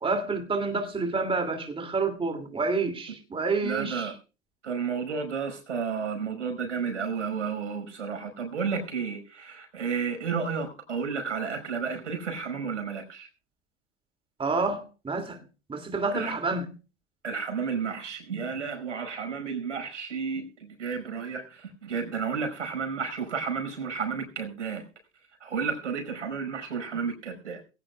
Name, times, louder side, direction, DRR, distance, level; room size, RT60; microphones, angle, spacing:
voice 1, 0.0-4.1 14.4-15.4 15.7-16.7, right 3 dB, 15° right, 2.5 m, -28 dB
voice 2, 3.6-4.1 4.6-13.3 16.1-16.4 17.2-24.9 25.4-27.6, right 6 dB, 80° right, 5.2 m, -32 dB
22.5 x 16.5 x 2.3 m
figure-of-eight pair, 80°, 36 cm